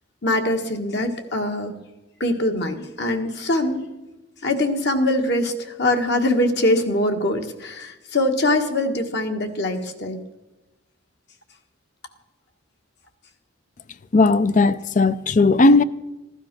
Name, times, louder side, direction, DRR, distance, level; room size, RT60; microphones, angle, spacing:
voice 1, 0.2-1.7 2.2-3.9 4.4-10.2, left 1 dB, 55° left, 1.6 m, -23 dB
voice 2, 14.1-15.8, left 3 dB, 40° left, 0.5 m, -16 dB
16.0 x 12.0 x 6.1 m
head